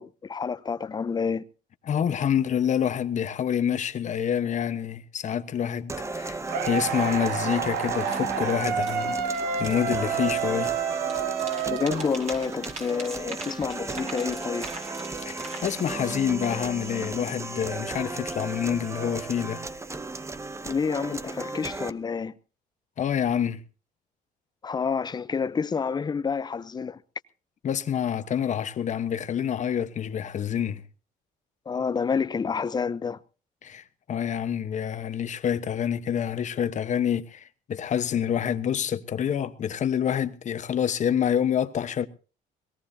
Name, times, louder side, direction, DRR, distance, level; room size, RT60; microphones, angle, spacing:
voice 1, 0.0-1.4 11.7-14.7 20.6-22.3 24.6-27.0 31.7-33.2, left 5 dB, 25° left, 0.7 m, -29 dB
voice 2, 1.9-10.7 15.2-19.6 23.0-23.6 27.6-30.8 33.6-42.1, left 9 dB, 45° left, 1.2 m, -27 dB
sound 1, 5.9-21.9, right 3 dB, 15° right, 0.9 m, -35 dB
sound 2, 6.5-12.6, right 7 dB, 85° right, 1.5 m, -29 dB
sound 3, 8.1-8.2 8.6-10.8 11.1-16.2, right 3 dB, 45° right, 5.2 m, -43 dB
21.5 x 17.5 x 2.8 m
cardioid pair, 110°, 17 cm